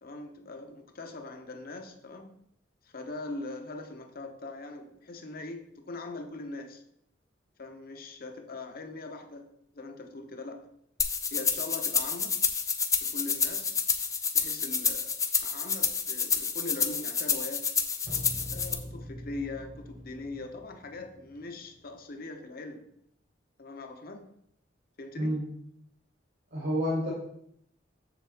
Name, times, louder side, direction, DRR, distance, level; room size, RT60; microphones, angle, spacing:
voice 1, 0.0-2.4 2.8-6.8 7.6-10.7 11.3-12.4 13.0-13.8 14.3-17.8 18.5-22.9 23.6-24.3 25.0-25.4, left 2 dB, 50° left, 1.0 m, -41 dB
sound 1, 11.0-18.7, left 6 dB, 20° left, 0.6 m, -29 dB
sound 2, 18.0-22.1, equal, 45° right, 1.7 m, -44 dB
voice 2, 25.1-25.5 26.5-27.1, equal, 65° right, 2.7 m, -29 dB
7.3 x 6.9 x 3.5 m
head